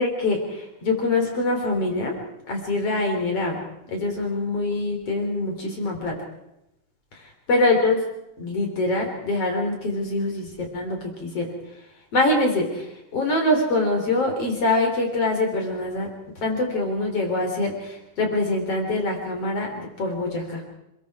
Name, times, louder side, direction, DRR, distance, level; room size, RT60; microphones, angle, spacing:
voice 1, 0.0-2.1 2.5-3.6 3.9-6.2 7.1-7.2 7.5-8.0 8.4-11.5 12.1-16.1 16.4-20.6, left 2 dB, 50° left, 2 dB, 4.4 m, -24 dB
27.5 x 21.0 x 4.8 m, 0.86 s
omnidirectional pair, 3.4 m